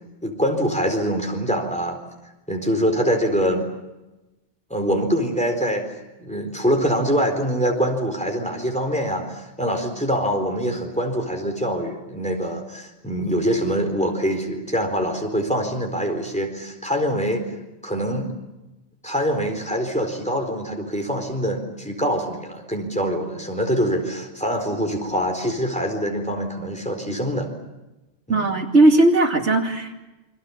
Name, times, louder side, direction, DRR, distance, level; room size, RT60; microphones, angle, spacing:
voice 1, 0.2-2.0 2.5-3.6 4.7-5.9 6.2-17.5 17.8-18.3 19.0-27.5 28.3-28.5, equal, 5° left, 2 dB, 4.3 m, -24 dB
voice 2, 28.3-30.0, right 2 dB, 85° right, 3 dB, 2.7 m, -17 dB
29.0 x 23.5 x 7.2 m, 1.0 s
omnidirectional pair, 1.2 m